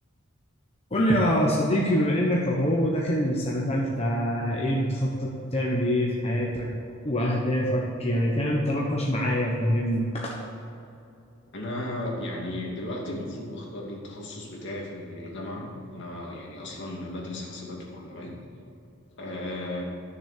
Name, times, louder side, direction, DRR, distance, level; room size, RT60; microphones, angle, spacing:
voice 1, 0.9-6.7 7.0-10.4, equal, 30° left, -3 dB, 1.1 m, -25 dB
voice 2, 11.5-18.4 19.2-19.8, left 1 dB, 60° left, -2 dB, 2.6 m, -35 dB
13.0 x 7.0 x 6.8 m, 2.7 s
head